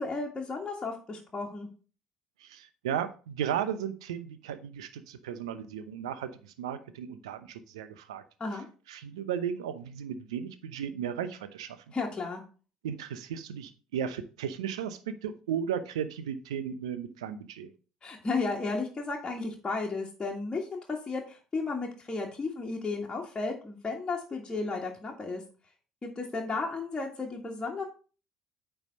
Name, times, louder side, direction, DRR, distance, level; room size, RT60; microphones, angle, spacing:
voice 1, 0.0-1.7 8.4-8.7 11.9-12.4 18.0-25.4 26.0-27.8, left 3 dB, 25° left, -1 dB, 1.8 m, -33 dB
voice 2, 2.4-8.2 8.9-11.8 12.8-17.7, right 8 dB, 75° right, 12 dB, 0.7 m, -35 dB
9.1 x 3.5 x 5.3 m, 0.36 s
figure-of-eight pair, 55°, 3 cm